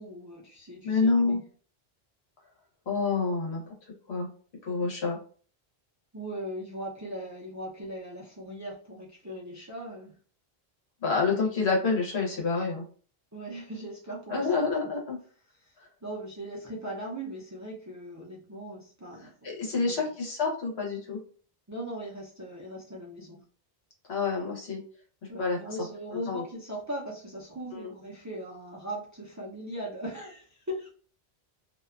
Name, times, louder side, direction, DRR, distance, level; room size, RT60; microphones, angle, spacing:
voice 1, 0.0-1.4 4.8-4.9 6.1-10.1 13.3-14.5 14.8-14.9 15.5-15.7 16.0-20.1 21.7-23.4 25.3-30.9, right 1 dB, 25° right, -4 dB, 0.4 m, -39 dB
voice 2, 0.8-1.4 2.9-3.7 4.1-4.3 4.6-5.2 11.0-12.8 14.3-15.2 15.8-15.9 19.4-21.2 24.1-24.8 25.2-25.6 26.2-26.4 27.7-27.9, left 4 dB, 85° left, -1 dB, 1.2 m, -28 dB
2.6 x 2.2 x 2.3 m, 0.43 s
omnidirectional pair, 1.1 m